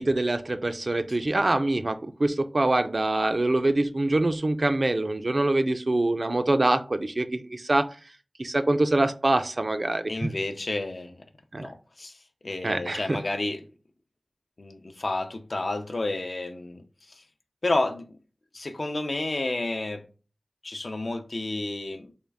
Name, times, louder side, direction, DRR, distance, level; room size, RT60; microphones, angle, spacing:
voice 1, 0.0-7.9 8.4-10.3 11.5-11.7 12.6-13.2, right 2 dB, 60° right, 0.4 m, -24 dB
voice 2, 10.1-11.2 11.6-13.7 14.6-17.2 17.6-18.2 18.5-20.0 20.6-22.1, left 2 dB, 70° left, 0.5 m, -31 dB
3.6 x 2.3 x 3.4 m
wide cardioid pair, 45°, 0 cm